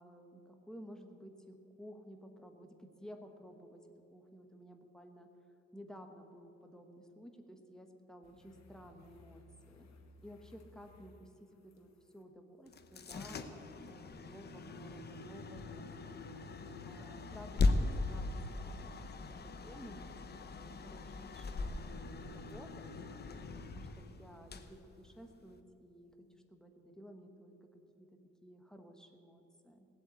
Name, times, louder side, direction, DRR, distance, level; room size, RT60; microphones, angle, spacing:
voice 1, 0.0-3.8 4.1-5.3 5.7-9.9 10.2-13.6 13.8-16.2 16.8-19.1 19.4-22.9 23.7-28.1 28.4-29.9, equal, ahead, 4 dB, 1.1 m, -54 dB
sound 1, 8.2-12.2 13.9-14.0, left 2 dB, 65° left, 1.7 m, -61 dB
sound 2, 12.7-25.6, left 3 dB, 35° left, 0.9 m, -39 dB
18.0 x 8.2 x 8.2 m, 3.0 s
cardioid pair, 155°, 30 cm